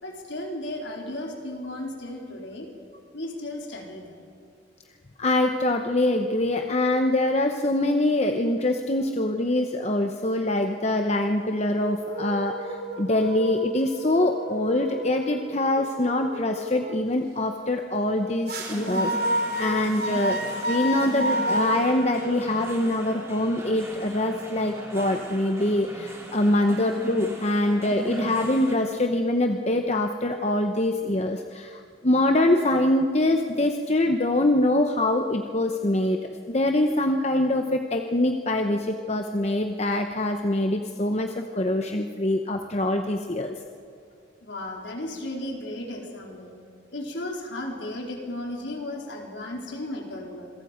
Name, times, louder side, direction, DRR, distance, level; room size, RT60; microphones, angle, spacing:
voice 1, 0.0-2.7 3.1-4.2 44.4-46.5 46.9-50.5, left 1 dB, 65° left, 0 dB, 4.1 m, -35 dB
voice 2, 5.2-20.4 20.6-43.6, left 1 dB, 35° left, 5 dB, 0.9 m, -24 dB
sound 1, 11.8-16.9 18.5-22.9, right 1 dB, 50° right, 3.7 m, -31 dB
sound 2, 18.6-28.8, equal, 15° right, 2.9 m, -38 dB
27.0 x 22.5 x 5.1 m, 2.5 s
head